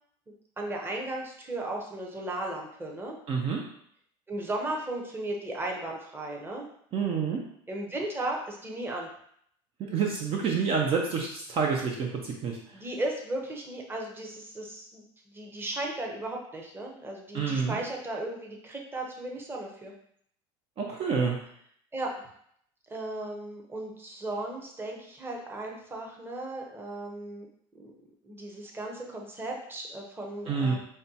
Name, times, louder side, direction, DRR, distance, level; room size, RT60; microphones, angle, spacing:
voice 1, 0.6-3.2 4.3-6.7 7.7-9.1 12.7-19.9 21.9-22.1 22.9-27.5 27.7-27.9 28.2-30.8, right 2 dB, 15° right, 0 dB, 0.9 m, -36 dB
voice 2, 3.3-3.6 6.9-7.4 9.8-12.6 17.3-17.8 20.8-21.4 30.5-30.8, right 5 dB, 45° right, 0 dB, 0.6 m, -28 dB
5.0 x 2.2 x 2.8 m, 0.67 s
supercardioid pair, 95°, 14 cm